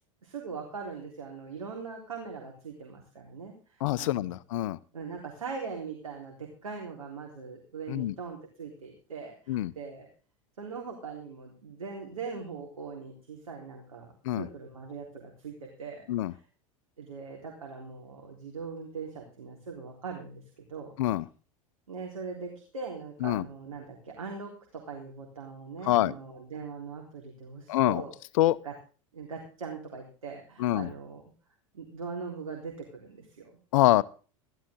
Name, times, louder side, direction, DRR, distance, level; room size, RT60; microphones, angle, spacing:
voice 1, 0.2-4.4 4.9-10.1 10.6-16.4 17.0-20.9 21.9-28.1 28.6-28.7 29.1-31.2 31.7-33.6, right 5 dB, 85° right, 0 dB, 3.7 m, -41 dB
voice 2, 3.8-4.8 7.9-8.1 9.5-9.7 14.3-14.5 16.1-16.3 21.0-21.2 23.2-23.4 25.9-26.1 27.7-28.0 28.4-28.6 30.6-30.9 33.7-34.0, left 15 dB, 70° left, 18 dB, 0.7 m, -25 dB
15.0 x 13.0 x 3.7 m, 0.37 s
hypercardioid pair, 85°, 18 cm